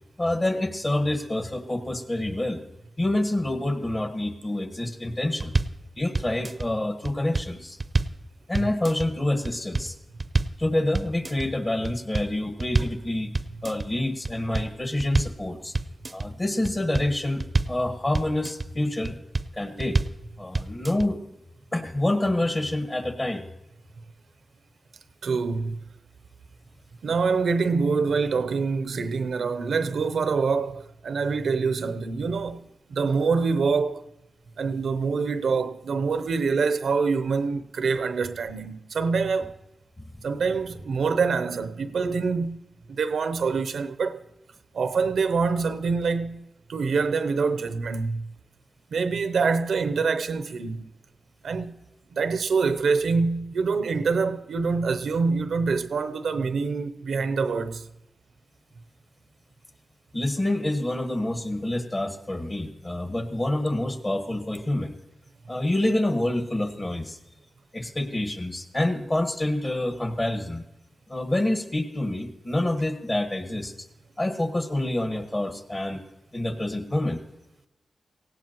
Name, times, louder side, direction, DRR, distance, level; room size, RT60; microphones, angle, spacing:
voice 1, 0.2-2.6 3.0-5.5 6.0-7.8 8.5-9.9 10.6-13.3 13.6-15.7 16.1-19.2 19.5-20.0 20.4-21.3 21.7-23.4 40.0-40.1 60.1-65.0 65.5-67.2 67.7-70.6 71.1-73.7 74.2-76.0 76.3-77.2, left 1 dB, 35° left, 1.5 m, -27 dB
sound 1, 5.4-5.8 6.1-6.7 7.1-8.2 8.5-9.1 9.5-9.9 10.2-10.6 10.9-11.5 11.8-13.0 13.3-13.9 14.2-15.4 15.7-16.3 16.7-17.8 18.1-18.7 19.1-19.5 19.8-20.2 20.5-21.1, right 3 dB, 40° right, 0.5 m, -27 dB
voice 2, 25.2-25.8 27.0-32.6 32.9-34.0 34.6-39.6 40.2-42.6 42.9-44.2 44.7-48.2 48.9-50.9 51.4-51.8 52.1-57.8, right 4 dB, 90° right, 0.6 m, -25 dB
18.0 x 16.5 x 3.0 m
cardioid pair, 60°, 0 cm